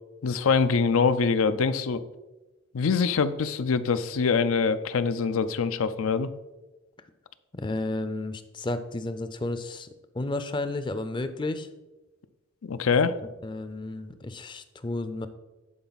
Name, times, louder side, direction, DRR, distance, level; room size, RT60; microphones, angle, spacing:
voice 1, 0.2-2.0 2.7-6.3 12.6-13.2, left 5 dB, 90° left, 13 dB, 0.5 m, -24 dB
voice 2, 7.5-9.9 10.1-11.7 13.4-15.3, left 2 dB, 25° left, 11 dB, 0.4 m, -32 dB
11.0 x 4.5 x 4.0 m, 1.1 s
head